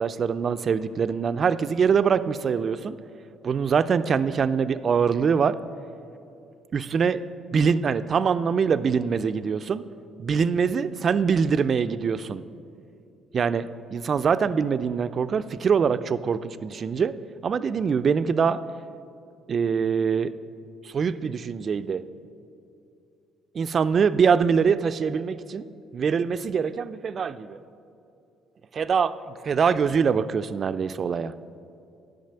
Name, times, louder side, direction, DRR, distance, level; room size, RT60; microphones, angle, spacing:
voice 1, 0.0-3.0 3.4-5.6 6.7-7.2 7.5-9.8 10.2-12.4 13.3-17.1 17.4-18.6 19.5-20.3 20.8-22.0 23.5-27.6 28.7-31.3, right 6 dB, 50° right, 13 dB, 0.4 m, -24 dB
10.5 x 5.2 x 6.7 m, 2.6 s
supercardioid pair, 60°, 0 cm